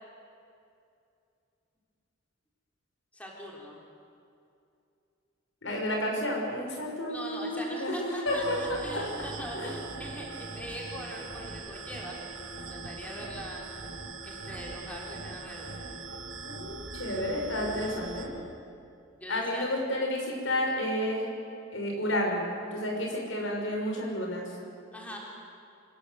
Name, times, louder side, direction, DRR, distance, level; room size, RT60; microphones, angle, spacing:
voice 1, 3.1-3.8 5.6-5.8 7.1-13.6 14.2-15.8 19.2-19.7 24.9-25.2, equal, 5° left, -2 dB, 3.5 m, -42 dB
voice 2, 5.6-9.0 9.5-9.8 16.4-18.3 19.3-21.3 21.7-24.5, left 1 dB, 75° left, 0 dB, 5.8 m, -31 dB
sound 1, 8.2-18.2, right 3 dB, 85° right, 4.1 m, -41 dB
26.5 x 19.5 x 7.9 m, 2.6 s
head